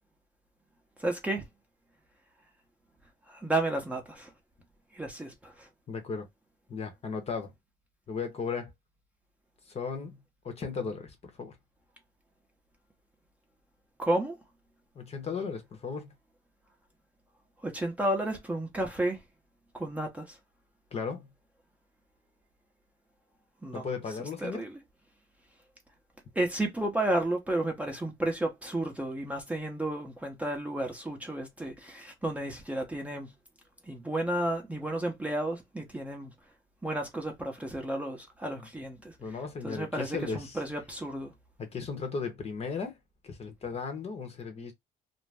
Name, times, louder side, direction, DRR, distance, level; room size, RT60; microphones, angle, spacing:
voice 1, 1.0-1.4 3.3-4.3 4.9-5.7 14.0-14.3 17.6-19.2 19.7-20.4 23.6-23.8 24.4-24.7 26.3-33.3 33.9-36.3 36.8-39.1 39.6-41.3, right 1 dB, 10° right, 0.8 m, -32 dB
voice 2, 5.9-6.3 6.7-7.5 8.1-8.7 9.7-10.2 10.4-11.6 14.9-16.1 20.9-21.3 23.7-24.7 38.6-38.7 39.2-40.6 41.6-43.0 43.2-44.7, left 5 dB, 40° left, 0.9 m, -36 dB
2.6 x 2.1 x 3.3 m
cardioid pair, 110°, 17 cm